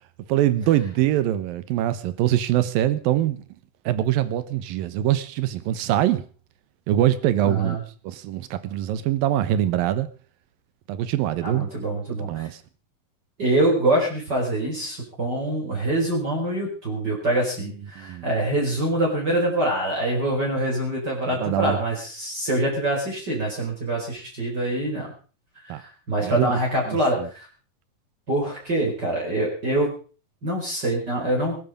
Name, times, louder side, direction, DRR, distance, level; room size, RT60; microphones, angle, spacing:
voice 1, 0.3-3.4 3.9-6.2 6.9-7.8 8.0-10.1 10.9-11.7 12.2-12.6 17.6-18.3 21.3-21.8 25.7-25.8 26.2-26.5 26.9-27.3, right 12 dB, 85° right, 2.8 m, -23 dB
voice 2, 7.4-7.8 11.4-12.5 13.4-25.1 25.6-25.7 26.1-27.5 28.3-29.9 30.4-31.6, right 1 dB, 30° right, 4.8 m, -25 dB
19.5 x 11.5 x 5.1 m
omnidirectional pair, 4.1 m